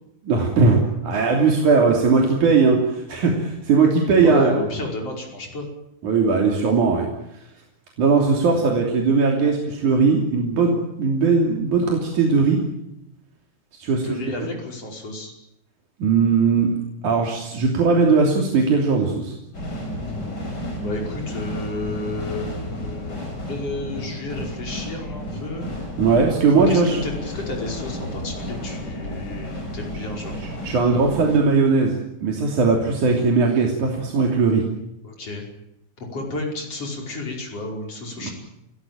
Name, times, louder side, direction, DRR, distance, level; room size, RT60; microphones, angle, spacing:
voice 1, 0.3-4.6 6.0-7.1 7.3-7.4 8.0-12.6 13.8-14.2 16.0-16.7 17.0-19.4 26.0-27.0 30.4-34.6 38.2-38.3, right 4 dB, 90° right, 0 dB, 4.5 m, -19 dB
voice 2, 4.1-5.7 14.0-15.3 20.8-25.7 26.7-30.4 35.0-35.4 36.0-38.3, left 2 dB, 50° left, 1 dB, 6.5 m, -32 dB
sound 1, 19.5-31.4, left 1 dB, 35° left, 5.9 m, -32 dB
28.5 x 17.5 x 9.2 m, 0.82 s
omnidirectional pair, 3.4 m